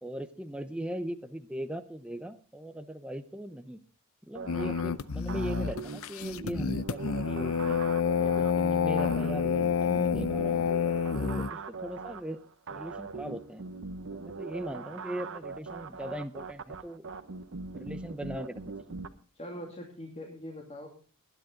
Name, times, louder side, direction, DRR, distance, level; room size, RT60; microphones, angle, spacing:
voice 1, 0.0-3.8 4.3-7.8 8.2-10.7 11.1-12.4 12.7-13.6 14.1-17.1 17.7-19.0, equal, 5° right, 9 dB, 0.7 m, -39 dB
sound 1, 4.3-19.1, right 4 dB, 60° right, 1.0 m, -41 dB
sound 2, 4.5-11.5, left 6 dB, 65° left, 0.6 m, -28 dB
voice 2, 19.3-20.9, equal, 30° left, 0 dB, 2.6 m, -42 dB
20.0 x 10.5 x 3.8 m, 0.38 s
head